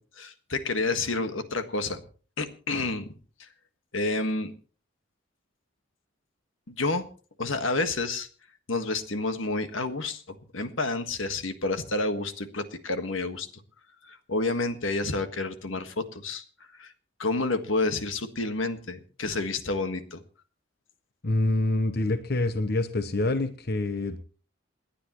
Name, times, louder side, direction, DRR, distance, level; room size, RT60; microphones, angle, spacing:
voice 1, 0.2-2.0 2.4-3.1 3.4-3.5 3.9-4.5 6.7-7.1 7.4-8.3 8.7-13.5 14.1-16.4 16.8-16.9 17.2-20.2, left 3 dB, 85° left, 8 dB, 1.6 m, -29 dB
voice 2, 21.2-24.2, left 2 dB, 55° left, 9 dB, 1.0 m, -26 dB
28.0 x 10.0 x 3.0 m, 0.39 s
head